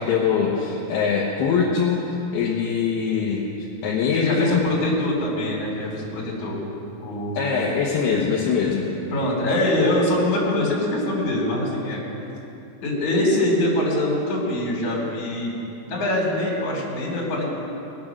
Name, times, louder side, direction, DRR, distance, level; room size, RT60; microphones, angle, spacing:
voice 1, 0.0-2.0 2.3-3.4 3.8-4.6 7.3-8.9, left 6 dB, 70° left, -4 dB, 2.5 m, -22 dB
voice 2, 4.1-6.6 7.0-7.5 9.1-12.0 12.8-15.6 15.9-17.4, left 1 dB, 40° left, -4 dB, 3.9 m, -23 dB
21.5 x 8.9 x 6.0 m, 2.9 s
omnidirectional pair, 5.9 m